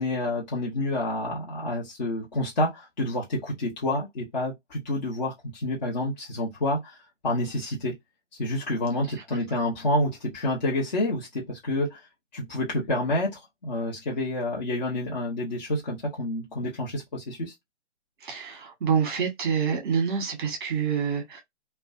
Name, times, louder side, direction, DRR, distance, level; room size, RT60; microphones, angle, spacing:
voice 1, 0.0-7.0 7.2-8.0 8.4-12.0 12.3-17.5, left 1 dB, 40° left, 0.9 m, -28 dB
voice 2, 18.2-21.4, right 6 dB, 20° right, 0.9 m, -27 dB
2.4 x 2.2 x 2.4 m
figure-of-eight pair, 150°, 36 cm